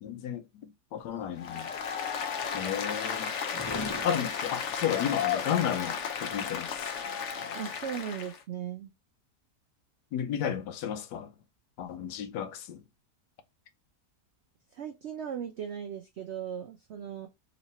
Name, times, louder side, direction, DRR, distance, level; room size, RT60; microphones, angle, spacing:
voice 1, 0.0-1.7 2.5-3.3 4.0-6.9 10.1-11.3 11.8-12.8, left 9 dB, 90° left, 1.3 m, -33 dB
sound 1, 1.0-7.0, left 2 dB, 25° left, 0.6 m, -44 dB
Applause, 1.4-8.4, left 7 dB, 60° left, 0.8 m, -34 dB
voice 2, 7.5-8.9 14.7-17.3, right 8 dB, 85° right, 0.6 m, -37 dB
3.1 x 3.0 x 4.1 m
omnidirectional pair, 1.8 m